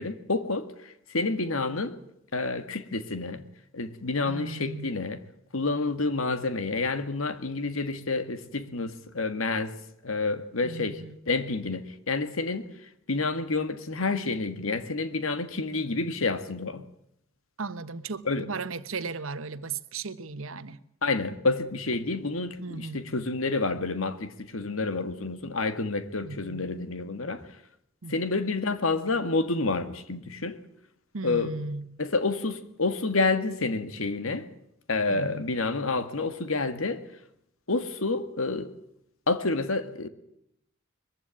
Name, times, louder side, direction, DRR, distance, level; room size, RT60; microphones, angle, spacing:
voice 1, 0.0-2.0 2.3-3.4 3.7-5.2 5.5-9.7 10.0-12.7 13.1-16.8 18.3-18.5 21.0-27.5 28.1-30.6 31.2-31.5 32.0-34.5 34.9-37.1 37.7-38.7 39.3-40.1, left 3 dB, 85° left, 1.9 m, -29 dB
voice 2, 4.2-5.0 10.6-11.2 17.6-20.8 22.6-23.0 26.2-26.6 28.0-28.1 31.1-31.9 35.1-35.5, right 4 dB, 85° right, 1.1 m, -36 dB
22.0 x 15.0 x 8.9 m
head